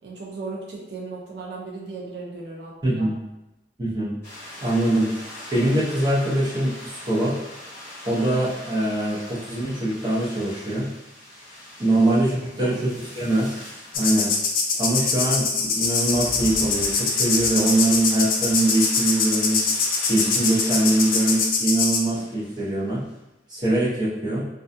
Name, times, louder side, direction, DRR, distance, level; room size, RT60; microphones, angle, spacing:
voice 1, 0.0-3.1 11.9-12.0 12.6-12.8, right 3 dB, 70° right, -4 dB, 0.5 m, -36 dB
voice 2, 2.8-3.2 3.8-4.1 4.6-5.1 5.5-7.4 8.0-10.9 11.8-13.6 13.9-14.3 14.8-19.6 20.1-23.0 23.5-24.5, right 1 dB, 25° right, -8 dB, 0.7 m, -23 dB
sound 1, 4.2-23.2, left 1 dB, 15° left, 0.9 m, -42 dB
sound 2, 13.9-22.0, left 4 dB, 50° left, 0.3 m, -23 dB
2.3 x 2.3 x 2.6 m, 0.94 s
head